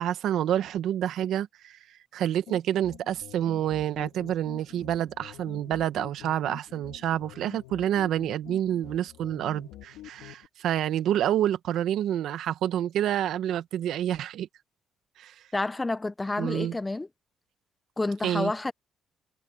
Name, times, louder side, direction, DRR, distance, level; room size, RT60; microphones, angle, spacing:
voice 1, 0.0-1.8 2.1-14.5 15.2-15.3 16.4-16.8 18.2-18.5, right 11 dB, 75° right, 1.4 m, -28 dB
sound 1, 2.5-10.5, left 14 dB, 85° left, 1.8 m, -47 dB
voice 2, 15.5-17.1 18.0-18.7, left 2 dB, 15° left, 0.6 m, -29 dB
cardioid pair, 80°, 0 cm